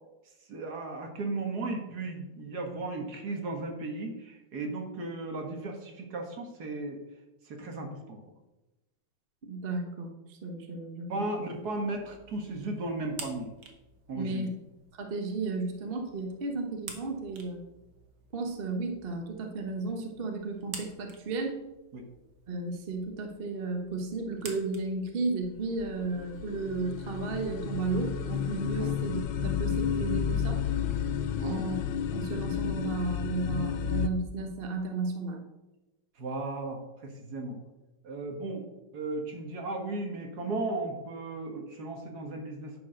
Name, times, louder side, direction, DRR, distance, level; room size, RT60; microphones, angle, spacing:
voice 1, 0.5-7.0 7.5-8.2 11.1-13.5 14.1-14.4 21.9-22.1 28.8-28.9 31.3-31.6 36.2-37.6 38.0-38.7 38.9-42.8, right 2 dB, 55° right, 3 dB, 1.8 m, -35 dB
voice 2, 9.4-11.2 14.1-14.5 15.0-17.6 18.3-21.6 22.5-30.6 31.4-31.8 32.1-35.4, right 3 dB, 35° right, 3 dB, 1.0 m, -34 dB
sound 1, 11.4-26.7, right 5 dB, 75° right, 2.2 m, -51 dB
sound 2, 25.4-34.1, left 8 dB, 70° left, 1.3 m, -31 dB
10.5 x 4.7 x 6.3 m, 1.0 s
omnidirectional pair, 2.3 m